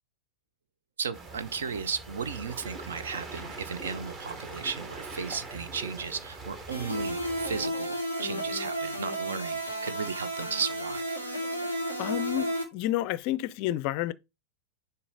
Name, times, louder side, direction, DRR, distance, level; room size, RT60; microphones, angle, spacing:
voice 1, 1.0-11.2, right 6 dB, 65° right, 0.6 m, -35 dB
sound 1, 1.1-7.7, right 3 dB, 30° right, 1.6 m, -42 dB
sound 2, 6.7-12.6, right 1 dB, 85° right, 1.7 m, -33 dB
voice 2, 12.0-14.1, left 14 dB, 45° left, 0.4 m, -30 dB
6.9 x 2.8 x 5.3 m
figure-of-eight pair, 90°, 0 cm